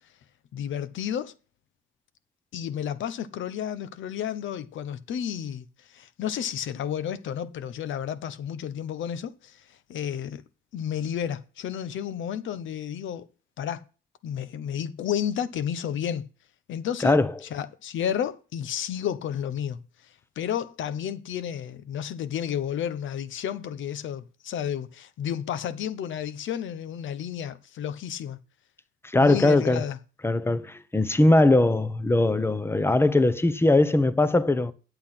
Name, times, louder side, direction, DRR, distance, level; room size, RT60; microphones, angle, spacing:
voice 1, 0.5-1.3 2.5-9.6 9.9-10.4 10.7-13.3 13.6-13.8 14.2-16.3 16.7-17.2 17.5-19.8 20.4-28.4 29.2-30.0, left 9 dB, 75° left, 1.0 m, -31 dB
voice 2, 29.1-29.8 30.2-34.7, left 2 dB, 10° left, 0.9 m, -20 dB
8.8 x 8.1 x 5.8 m
cardioid pair, 90°, 20 cm